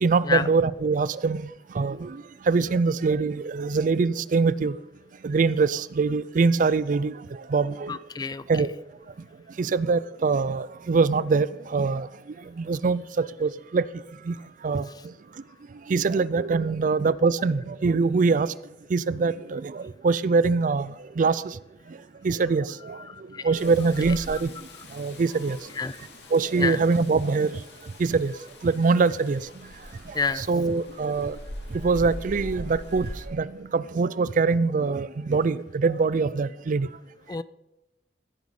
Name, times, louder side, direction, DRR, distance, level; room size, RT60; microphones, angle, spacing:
voice 1, 0.0-1.5 1.7-4.7 5.2-7.2 7.5-7.9 8.5-8.7 9.6-12.1 12.6-13.8 14.3-14.4 14.6-14.9 15.9-18.5 18.9-21.6 22.2-23.0 23.4-24.5 24.9-25.6 26.3-27.6 28.0-28.3 28.6-29.4 30.1-31.4 31.7-36.9, right 4 dB, 50° right, 0.4 m, -23 dB
voice 2, 7.9-8.4 23.1-23.4 25.8-26.0 26.6-26.8 30.1-30.4 37.3-37.4, left 5 dB, 25° left, 0.4 m, -28 dB
Rain, 23.5-33.3, left 1 dB, 75° left, 2.4 m, -42 dB
16.0 x 9.4 x 4.8 m
head